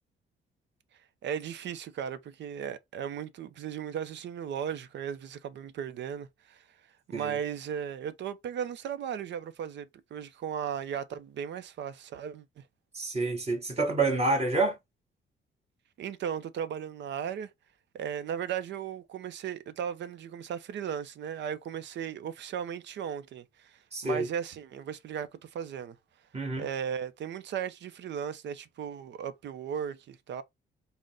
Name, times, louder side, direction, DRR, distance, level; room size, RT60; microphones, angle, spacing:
voice 1, 1.2-6.6 7.1-12.6 16.0-17.5 17.9-26.0 26.6-30.4, right 8 dB, 65° right, 0.6 m, -36 dB
voice 2, 12.9-14.8 23.9-24.3 26.3-26.7, right 3 dB, 30° right, 1.5 m, -28 dB
3.9 x 2.1 x 3.7 m
cardioid pair, 90°, 20 cm